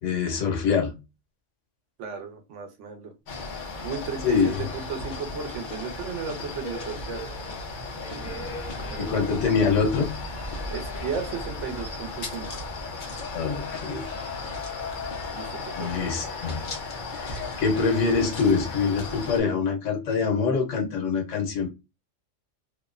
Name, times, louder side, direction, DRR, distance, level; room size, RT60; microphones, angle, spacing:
voice 1, 0.0-1.0 4.2-4.6 9.0-10.2 13.3-14.2 15.7-16.7 17.1-21.7, left 5 dB, 90° left, 1.1 m, -25 dB
voice 2, 2.0-3.1 3.8-7.2 8.9-9.2 10.7-12.6 15.3-16.2, right 6 dB, 75° right, 1.0 m, -35 dB
sound 1, 3.3-19.4, left 3 dB, 50° left, 0.7 m, -35 dB
sound 2, 5.0-13.5, right 1 dB, 30° right, 0.5 m, -44 dB
2.7 x 2.1 x 2.3 m
omnidirectional pair, 1.2 m